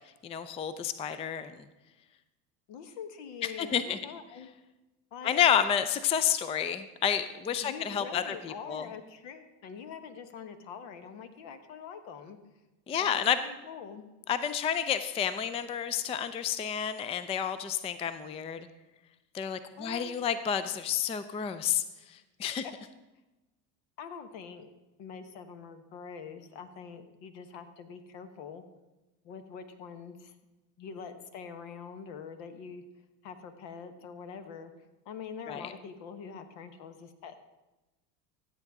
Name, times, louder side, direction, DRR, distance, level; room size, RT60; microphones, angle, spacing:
voice 1, 0.2-1.6 3.6-4.0 5.2-8.9 12.9-13.4 14.3-18.7 19.3-21.8 22.1-22.6 35.5-35.7, left 8 dB, 15° left, 12 dB, 0.3 m, -30 dB
voice 2, 2.7-4.5 5.1-5.5 7.5-12.4 13.0-14.1 19.8-20.1 22.6-22.7 24.0-24.7 25.0-28.6 29.2-30.4 30.8-32.8 33.2-34.7 35.0-37.4, left 6 dB, 65° left, 9 dB, 1.2 m, -44 dB
14.5 x 8.0 x 3.6 m, 1.1 s
hypercardioid pair, 90°, 47 cm